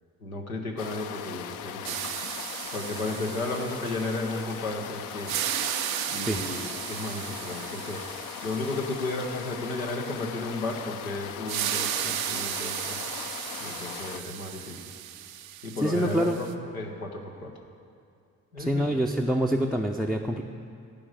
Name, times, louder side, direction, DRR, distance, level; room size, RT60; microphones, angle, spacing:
voice 1, 0.2-2.0 2.7-5.4 6.1-13.0 13.6-14.8 15.6-16.5 16.7-17.5 18.5-19.0, left 2 dB, 85° left, 2 dB, 0.9 m, -34 dB
sound 1, 0.8-14.2, left 9 dB, 50° left, 0.6 m, -39 dB
sound 2, 1.8-4.8 5.1-9.9 11.5-16.5, right 11 dB, 80° right, 0.5 m, -35 dB
voice 2, 15.8-16.4 18.6-20.4, equal, ahead, 2 dB, 0.5 m, -26 dB
12.0 x 5.1 x 8.6 m, 2.4 s
figure-of-eight pair, 40°, 41 cm